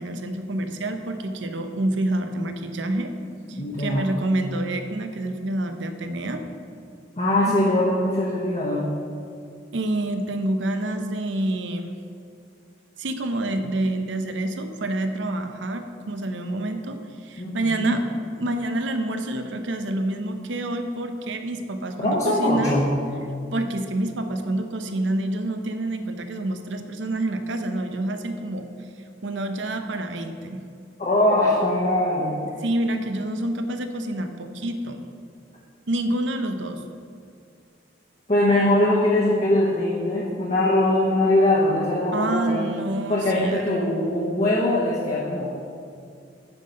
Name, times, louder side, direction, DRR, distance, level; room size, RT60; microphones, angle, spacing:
voice 1, 0.0-3.1 3.5-6.4 7.5-7.6 9.7-11.9 13.0-18.0 18.4-22.8 23.5-28.7 29.2-30.6 32.6-35.0 35.9-36.8 42.1-43.6, right 1 dB, 80° right, 7 dB, 0.7 m, -27 dB
voice 2, 3.5-4.1 7.2-8.9 17.4-18.0 22.0-22.9 31.0-32.3 38.3-42.7 43.1-45.6, left 1 dB, 35° left, -5 dB, 1.1 m, -22 dB
9.0 x 5.7 x 5.3 m, 2.4 s
head